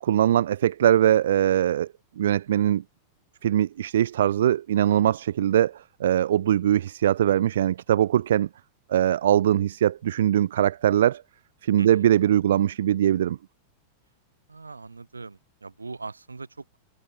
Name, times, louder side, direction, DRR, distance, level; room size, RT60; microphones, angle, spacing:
voice 1, 0.0-1.9 2.2-2.8 3.4-8.5 8.9-11.2 11.6-13.4, right 11 dB, 60° right, 0.3 m, -21 dB
voice 2, 14.5-16.8, right 3 dB, 80° right, 2.6 m, -40 dB
figure-of-eight pair, 90°, 0 cm